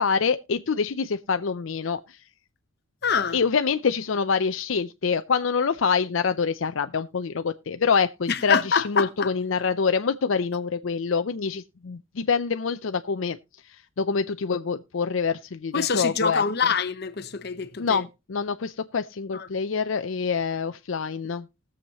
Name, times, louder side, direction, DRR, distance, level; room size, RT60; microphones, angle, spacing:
voice 1, 0.0-2.2 3.3-13.4 13.7-16.4 17.8-21.5, left 5 dB, 75° left, 0.6 m, -26 dB
voice 2, 3.0-3.4 8.3-9.3 15.7-18.0 19.3-19.5, left 6 dB, 55° left, 1.0 m, -25 dB
20.0 x 7.2 x 3.0 m
head